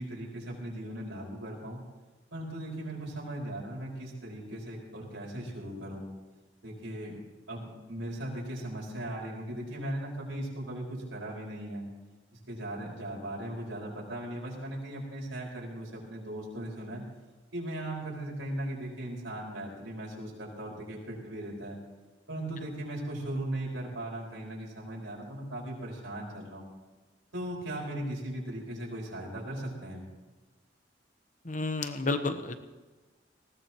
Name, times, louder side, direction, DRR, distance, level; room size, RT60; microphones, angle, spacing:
voice 1, 0.0-1.8 2.3-6.1 6.6-7.1 7.5-11.9 12.5-17.0 17.5-21.8 22.3-26.7 27.3-30.0, right 1 dB, 80° right, -3 dB, 5.3 m, -38 dB
voice 2, 31.4-32.6, left 3 dB, 40° left, 8 dB, 1.1 m, -31 dB
20.0 x 17.5 x 3.1 m, 1.2 s
head